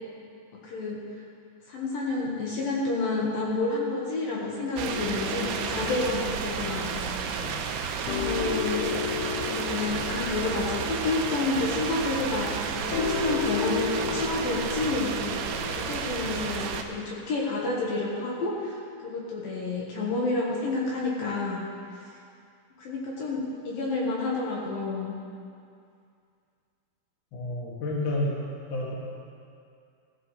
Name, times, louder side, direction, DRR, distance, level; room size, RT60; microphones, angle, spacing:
voice 1, 0.6-1.0 1.7-7.3 8.1-9.0 9.4-15.4 15.8-21.6 22.8-25.2, left 3 dB, 65° left, -4 dB, 2.7 m, -30 dB
sound 1, 4.8-16.8, right 6 dB, 80° right, 2.5 m, -32 dB
sound 2, 4.9-16.5, left 7 dB, 80° left, 1.8 m, -34 dB
voice 2, 27.3-28.3 28.7-28.9, left 1 dB, 40° left, -4 dB, 1.8 m, -29 dB
15.5 x 14.5 x 3.2 m, 2.4 s
omnidirectional pair, 5.0 m